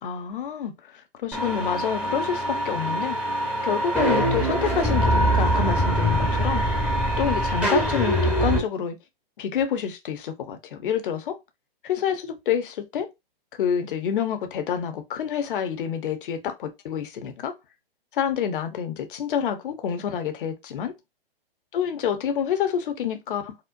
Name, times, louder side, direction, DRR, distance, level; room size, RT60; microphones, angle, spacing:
voice 1, 0.0-3.2 3.6-6.6 7.2-9.0 9.4-11.4 11.8-13.1 13.6-17.5 18.1-20.9 21.7-23.6, left 8 dB, 60° left, 0.9 m, -28 dB
sound 1, 1.3-8.6, right 1 dB, 5° right, 0.7 m, -23 dB
4.3 x 2.0 x 2.5 m
hypercardioid pair, 135°, 30 cm